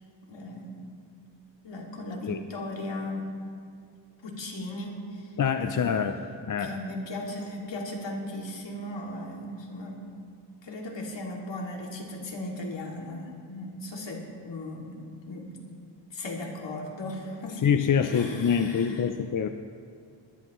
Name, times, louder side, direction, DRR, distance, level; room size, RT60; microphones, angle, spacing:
voice 1, 0.3-0.9 1.6-3.3 4.2-5.4 5.6-6.1 6.6-10.0 10.6-15.0 15.3-15.6 16.1-17.6 18.0-19.1, left 1 dB, 65° left, -1 dB, 2.6 m, -37 dB
voice 2, 5.4-6.1 6.5-6.7 17.6-19.5, left 7 dB, 40° left, 7 dB, 0.6 m, -25 dB
20.5 x 13.5 x 3.1 m, 2.2 s
cardioid pair, 95°, 48 cm